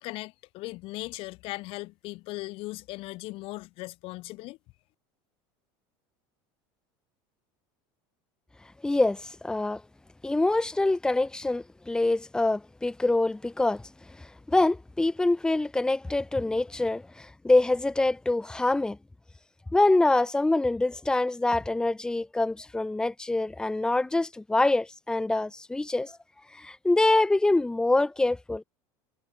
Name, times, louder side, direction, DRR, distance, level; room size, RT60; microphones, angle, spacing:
voice 1, 0.0-4.6, left 21 dB, 55° left, 2.2 m, -38 dB
voice 2, 8.8-9.8 10.2-13.8 14.2-19.0 19.7-26.2 26.5-28.6, left 2 dB, 5° left, 2.2 m, -25 dB
cardioid pair, 150°, 11 cm